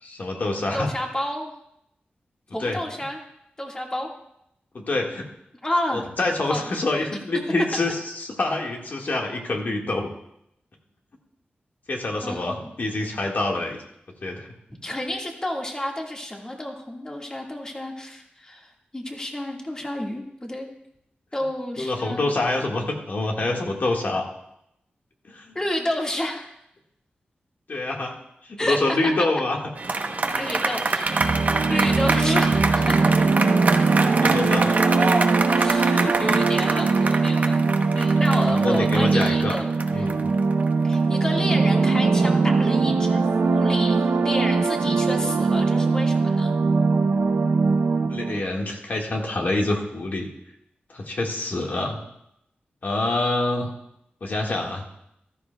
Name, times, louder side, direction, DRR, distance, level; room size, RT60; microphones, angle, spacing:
voice 1, 0.0-0.9 2.6-2.8 4.7-5.3 5.9-10.1 11.9-13.8 14.2-14.5 21.8-24.2 25.3-25.5 27.7-28.2 28.4-29.6 32.0-32.5 34.2-34.9 37.5-37.6 38.4-39.6 39.9-40.3 48.1-50.3 50.9-52.0 52.8-53.7 54.2-54.8, left 2 dB, 55° left, 0 dB, 1.7 m, -26 dB
voice 2, 0.7-1.5 2.5-3.2 3.6-4.1 5.6-6.1 6.5-7.1 12.2-12.7 14.8-20.7 21.3-22.3 25.5-26.5 28.6-29.0 30.3-31.3 31.7-33.3 35.5-37.5 37.9-40.1 40.8-46.5, left 1 dB, 20° left, 0 dB, 1.8 m, -30 dB
sound 1, 29.8-41.1, right 3 dB, 50° right, 0.9 m, -25 dB
sound 2, 31.0-48.4, right 4 dB, 65° right, 0.6 m, -21 dB
14.0 x 13.0 x 2.3 m, 0.79 s
wide cardioid pair, 105°, 4 cm